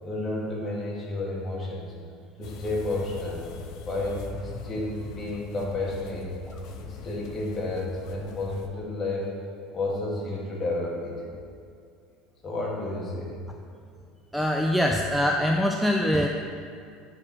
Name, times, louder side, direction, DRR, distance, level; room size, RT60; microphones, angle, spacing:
voice 1, 0.0-1.9 2.4-3.4 3.8-6.3 6.7-9.4 9.7-11.2 12.4-13.4, left 2 dB, 30° left, -3 dB, 1.7 m, -31 dB
sound 1, 2.4-8.7, left 4 dB, 60° left, 0.6 m, -42 dB
voice 2, 14.3-16.3, equal, ahead, 1 dB, 0.4 m, -23 dB
8.6 x 4.4 x 4.4 m, 2.3 s
supercardioid pair, 130°, 0 cm